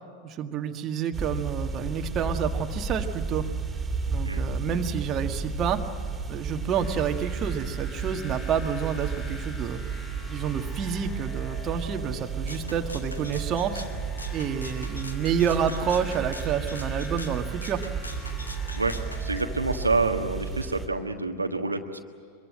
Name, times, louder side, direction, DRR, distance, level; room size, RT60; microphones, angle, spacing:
voice 1, 0.2-3.5 4.1-5.8 6.3-9.8 10.3-13.8 14.3-17.8, right 7 dB, 30° right, 4 dB, 1.7 m, -29 dB
sound 1, 1.1-20.9, right 3 dB, 15° right, 3.4 m, -34 dB
sound 2, 6.8-20.5, right 7 dB, 35° left, 5.6 m, -36 dB
Rattle (instrument), 12.5-19.2, left 2 dB, 80° left, 1.8 m, -43 dB
voice 2, 18.7-22.0, right 3 dB, 80° right, 4 dB, 1.5 m, -28 dB
24.5 x 23.0 x 7.6 m, 2.3 s
figure-of-eight pair, 90°, 0 cm